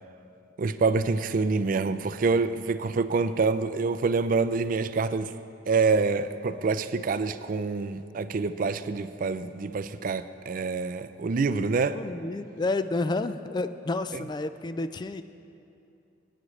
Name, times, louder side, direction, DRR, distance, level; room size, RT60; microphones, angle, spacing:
voice 1, 0.6-5.3 5.7-12.0 14.1-14.2, right 4 dB, 50° right, 12 dB, 0.4 m, -26 dB
voice 2, 11.9-15.2, left 2 dB, 25° left, 10 dB, 0.3 m, -30 dB
20.5 x 9.9 x 3.2 m, 2.7 s
head